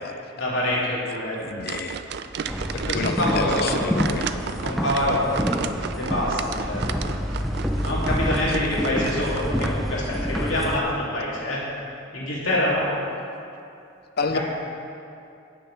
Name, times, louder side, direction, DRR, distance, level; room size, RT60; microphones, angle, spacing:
voice 1, 0.4-1.3 2.7-3.7 4.6-5.6 6.0-6.8 7.8-11.6 12.1-12.9 14.3-14.4, left 1 dB, 85° left, -6 dB, 2.6 m, -25 dB
voice 2, 1.4-2.0 2.7-4.3 8.6-8.8 14.2-14.4, left 4 dB, 50° left, 7 dB, 0.6 m, -29 dB
sound 1, 1.6-9.7, right 6 dB, 55° right, 0.3 m, -33 dB
sound 2, 2.5-10.8, equal, ahead, 0.5 m, -28 dB
17.0 x 6.2 x 3.3 m, 2.6 s
head